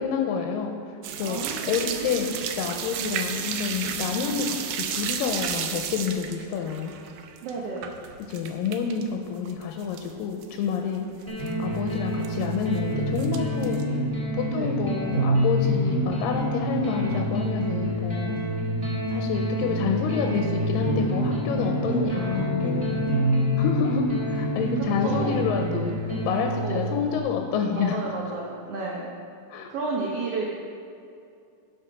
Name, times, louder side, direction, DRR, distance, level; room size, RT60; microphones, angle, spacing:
voice 1, 0.0-4.6 4.9-6.9 8.3-11.1 11.6-13.9 14.3-18.4 19.1-23.0 23.6-26.0 26.2-28.0 29.5-29.7, left 6 dB, 85° left, 3 dB, 2.3 m, -28 dB
sound 1, 1.0-9.0 9.3-10.1 10.4-10.5 11.0-11.1 11.2-11.5 12.3-12.8 13.2-13.8, right 8 dB, 90° right, 2.5 m, -32 dB
voice 2, 1.2-2.1 7.4-7.9 14.5-14.7 21.9-22.1 25.0-25.4 26.6-26.8 27.7-29.1 29.7-30.5, right 4 dB, 70° right, -3 dB, 1.5 m, -32 dB
sound 2, 11.3-27.2, equal, 15° right, 1.5 m, -27 dB
12.0 x 5.1 x 5.8 m, 2.5 s
omnidirectional pair, 4.0 m